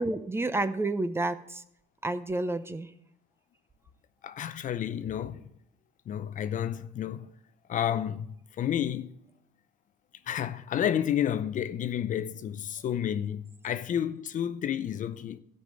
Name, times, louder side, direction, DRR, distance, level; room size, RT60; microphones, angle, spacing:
voice 1, 0.0-1.6 2.0-2.9, right 2 dB, 15° right, 0.7 m, -30 dB
voice 2, 4.2-5.4 6.1-7.3 7.7-9.1 10.3-15.4, left 10 dB, 50° left, 0.6 m, -31 dB
13.0 x 5.6 x 7.8 m
cardioid pair, 110°, 17 cm